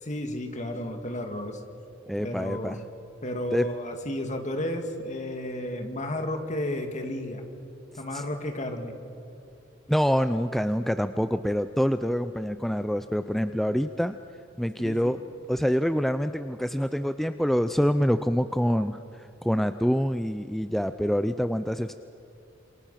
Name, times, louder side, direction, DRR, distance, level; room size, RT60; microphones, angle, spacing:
voice 1, 0.0-1.6 2.2-2.8 3.2-7.4 8.0-8.9 14.8-15.2, left 1 dB, 35° left, 4 dB, 2.5 m, -32 dB
voice 2, 2.1-2.8 3.5-3.6 8.1-8.2 9.9-14.2 14.6-15.2 15.5-21.9, equal, ahead, 10 dB, 0.5 m, -26 dB
27.5 x 27.0 x 5.9 m, 2.7 s
head